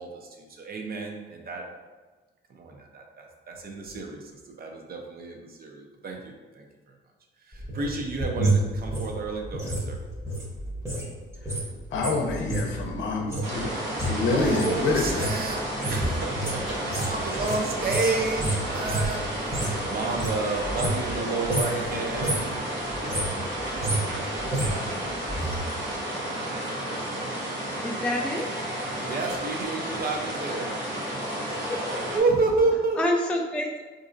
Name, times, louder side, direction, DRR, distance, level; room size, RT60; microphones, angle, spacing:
voice 1, 0.0-1.7 2.5-7.0 7.4-10.0 14.3-25.4 28.9-30.8 32.1-33.0, right 3 dB, 50° right, 1 dB, 0.6 m, -31 dB
sound 1, 7.5-11.1 11.3-19.8 20.1-21.2 21.4-21.8 22.1-22.6 22.9-25.6 25.9-26.0, right 2 dB, 15° right, 0.9 m, -30 dB
voice 2, 11.9-13.7 14.0-15.3, left 3 dB, 70° left, 2 dB, 0.6 m, -27 dB
sound 2, 13.4-32.2, right 1 dB, 70° right, 0.9 m, -32 dB
voice 3, 27.8-28.5 31.4-32.0 33.0-33.8, left 1 dB, 5° left, 0 dB, 0.3 m, -28 dB
4.0 x 2.6 x 2.6 m, 1.3 s
cardioid pair, 90°, 20 cm